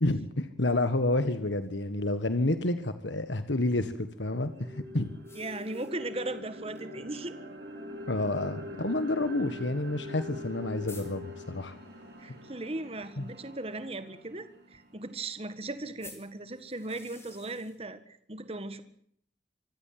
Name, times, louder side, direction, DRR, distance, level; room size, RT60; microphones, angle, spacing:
voice 1, 0.0-5.2 8.1-11.8 13.2-13.3, left 2 dB, 85° left, 11 dB, 1.7 m, -29 dB
sound 1, 0.6-2.7 5.2-6.4 6.7-6.8 7.2-7.3 8.2-8.3 10.1-10.2 10.4-10.5 10.9-11.1 16.0-17.8, left 4 dB, 15° left, 4.5 m, -52 dB
sound 2, 3.9-15.8, left 1 dB, 65° right, 7.0 m, -44 dB
voice 2, 5.3-7.4 12.2-18.8, right 2 dB, 35° right, 11 dB, 1.6 m, -38 dB
25.5 x 16.0 x 7.6 m, 0.66 s
head